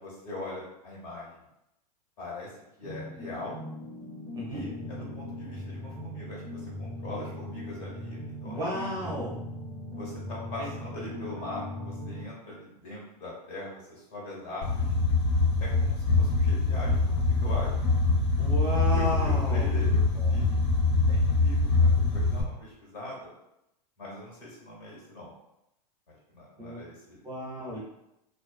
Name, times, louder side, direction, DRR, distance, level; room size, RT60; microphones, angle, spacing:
voice 1, 0.0-1.3 2.2-2.5 2.8-3.5 4.5-9.1 9.9-14.9 15.6-17.7 18.9-20.0 20.3-20.4 21.1-23.3 24.0-25.3 26.1-27.2, left 2 dB, 45° left, -3 dB, 1.2 m, -41 dB
sound 1, 2.8-12.2, left 1 dB, 20° left, 1.0 m, -39 dB
voice 2, 8.4-9.4 10.6-10.7 18.4-19.6 20.1-20.4 26.6-26.8 27.2-27.8, equal, 20° right, -4 dB, 0.6 m, -33 dB
sound 2, 14.6-22.4, left 3 dB, 75° left, 0.7 m, -24 dB
2.4 x 2.3 x 2.4 m, 0.86 s
hypercardioid pair, 110°, 21 cm